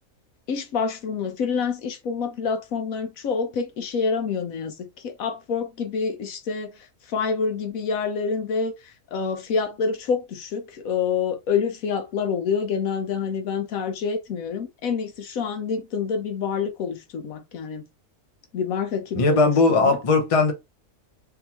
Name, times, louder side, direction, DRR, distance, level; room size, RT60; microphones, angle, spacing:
voice 1, 0.5-6.7 7.1-17.8 18.5-20.0, left 5 dB, 80° left, 1.2 m, -27 dB
voice 2, 19.1-20.5, left 3 dB, 30° left, 0.7 m, -18 dB
3.8 x 2.8 x 2.9 m
omnidirectional pair, 1.4 m